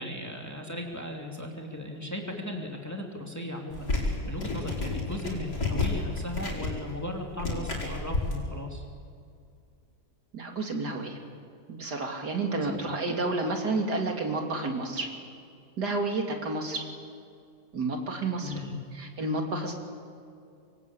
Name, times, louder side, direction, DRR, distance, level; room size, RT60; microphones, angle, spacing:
voice 1, 0.0-8.8 12.6-13.1 18.4-18.8, left 1 dB, 10° left, 1 dB, 2.8 m, -37 dB
sound 1, 3.7-8.3, left 3 dB, 65° left, 5.7 m, -31 dB
voice 2, 10.3-11.2 11.7-15.1 15.8-16.8 17.7-18.6 18.9-19.7, right 2 dB, 65° right, 2 dB, 3.2 m, -30 dB
26.0 x 22.5 x 8.6 m, 2.4 s
omnidirectional pair, 1.9 m